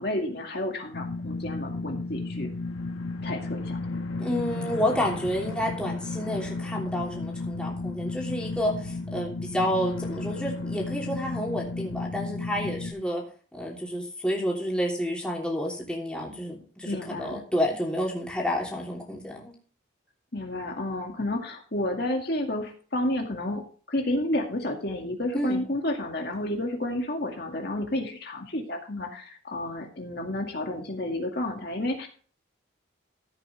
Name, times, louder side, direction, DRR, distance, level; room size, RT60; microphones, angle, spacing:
voice 1, 0.0-2.5 3.2-3.8 16.8-17.4 20.3-32.1, left 1 dB, 50° left, 2 dB, 2.0 m, -31 dB
sound 1, 0.9-12.9, left 3 dB, 85° left, 1.5 m, -33 dB
voice 2, 4.2-13.2 13.5-19.5 25.3-25.6, equal, 5° left, -2 dB, 3.1 m, -30 dB
14.5 x 8.8 x 3.3 m, 0.42 s
head